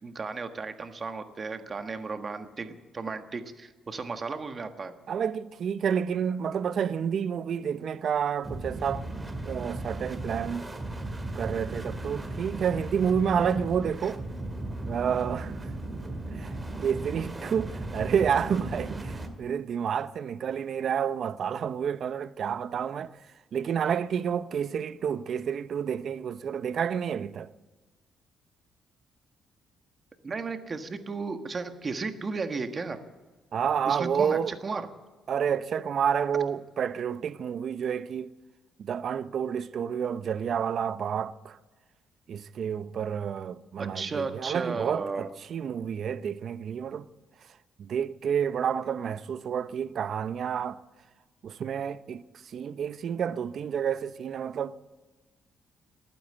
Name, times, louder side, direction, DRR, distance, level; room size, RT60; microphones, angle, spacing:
voice 1, 0.0-4.9 30.2-33.0 33.9-34.9 43.8-45.3, right 4 dB, 35° right, 1.4 m, -34 dB
voice 2, 5.1-9.1 9.4-10.7 11.3-14.2 14.9-15.7 16.3-16.5 16.8-23.2 23.5-27.5 33.5-34.5 35.3-38.3 38.8-41.6 42.3-47.1 47.8-50.8 51.4-55.0, right 7 dB, 60° right, 0.6 m, -29 dB
sound 1, 8.4-19.3, right 2 dB, 20° right, 2.2 m, -36 dB
20.0 x 9.2 x 7.8 m
cardioid pair, 90°, 0 cm